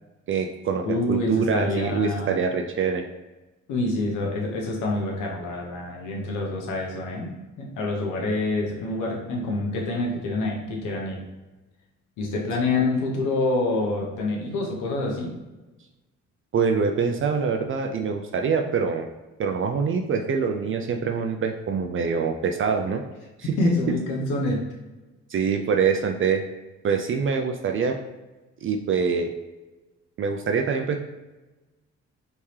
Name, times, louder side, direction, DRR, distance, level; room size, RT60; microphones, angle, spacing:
voice 1, 0.3-3.0 16.5-19.1 19.4-23.0 23.4-23.6 25.3-26.4 26.8-28.0 28.6-29.3 30.2-31.0, right 5 dB, 45° right, 4 dB, 0.4 m, -24 dB
voice 2, 0.8-2.4 3.7-7.3 7.6-11.2 12.2-15.3 23.6-24.6, left 2 dB, 85° left, 0 dB, 1.0 m, -26 dB
3.5 x 3.1 x 2.8 m, 1.1 s
cardioid pair, 90°, 30 cm